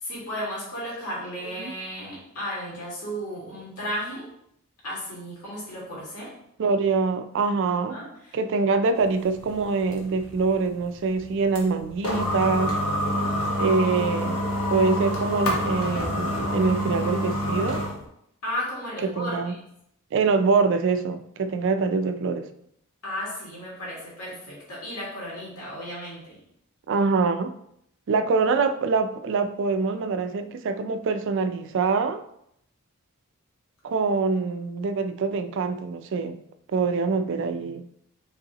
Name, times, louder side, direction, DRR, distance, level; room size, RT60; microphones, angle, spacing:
voice 1, 0.0-4.3 4.8-6.3 7.9-8.4 18.4-19.6 23.0-26.4, equal, 90° left, -5 dB, 1.8 m, -34 dB
voice 2, 6.6-8.0 8.3-12.8 13.6-14.4 14.7-17.8 19.0-19.5 20.1-22.5 26.9-27.5 28.1-32.2 33.8-36.4 36.7-37.9, right 4 dB, 55° right, 10 dB, 0.4 m, -24 dB
sound 1, 9.0-18.0, equal, 70° left, 1.0 m, -27 dB
5.5 x 3.1 x 2.8 m, 0.73 s
head